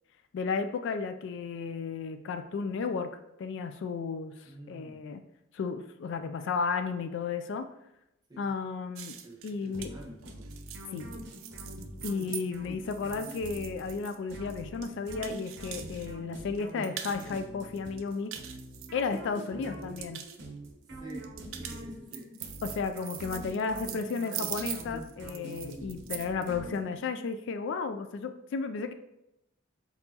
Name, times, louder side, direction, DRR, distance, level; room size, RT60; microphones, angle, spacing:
voice 1, 0.3-5.2 5.5-7.7 8.4-9.1 9.4-9.9 10.9-11.1 12.0-18.3 18.9-20.2 22.6-28.9, left 5 dB, 60° left, 9 dB, 0.3 m, -33 dB
voice 2, 4.4-5.0 8.3-8.5 9.2-10.5 12.4-12.5 19.5-20.1 20.9-21.3 21.5-22.2, right 1 dB, 20° right, -3 dB, 1.0 m, -48 dB
sound 1, 8.9-16.1 16.4-17.4 17.7-19.4 19.7-20.4 21.1-26.5, right 11 dB, 80° right, 0.4 m, -42 dB
sound 2, 9.7-27.2, right 1 dB, 60° right, 0.8 m, -44 dB
4.4 x 4.1 x 2.8 m, 0.85 s
head